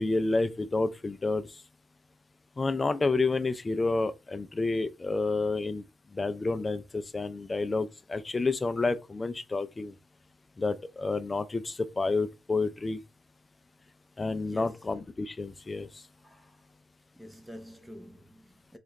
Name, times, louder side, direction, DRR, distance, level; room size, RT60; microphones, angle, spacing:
voice 1, 0.0-1.5 2.6-5.8 6.1-9.9 10.6-13.0 14.2-15.9, left 3 dB, 25° left, 0.4 m, -29 dB
voice 2, 14.4-14.9 16.2-16.6 17.2-18.8, equal, 5° right, 0.8 m, -48 dB
3.1 x 2.4 x 4.1 m
cardioid pair, 95°, 0 cm